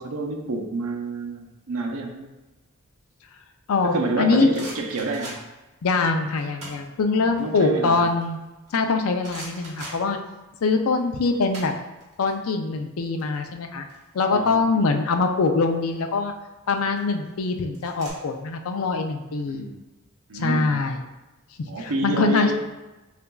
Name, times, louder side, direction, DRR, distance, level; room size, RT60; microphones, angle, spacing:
voice 1, 0.0-2.3 3.8-5.4 7.1-8.1 14.3-14.8 19.5-19.8 20.3-20.8 21.7-22.5, right 2 dB, 85° right, 2 dB, 0.6 m, -28 dB
voice 2, 3.7-4.5 5.8-8.4 8.7-10.2 10.6-11.7 12.2-13.9 14.1-16.3 16.7-19.6 20.3-21.0 21.8-22.5, left 4 dB, 85° left, 5 dB, 0.4 m, -23 dB
sound 1, 4.0-5.7 6.4-6.9 7.3-8.8 9.2-10.6 10.9-12.3 12.6-12.8 13.0-14.6 15.6-16.0 16.6-18.1, right 1 dB, 35° right, 1.4 m, -41 dB
6.7 x 2.5 x 2.3 m, 1.1 s
head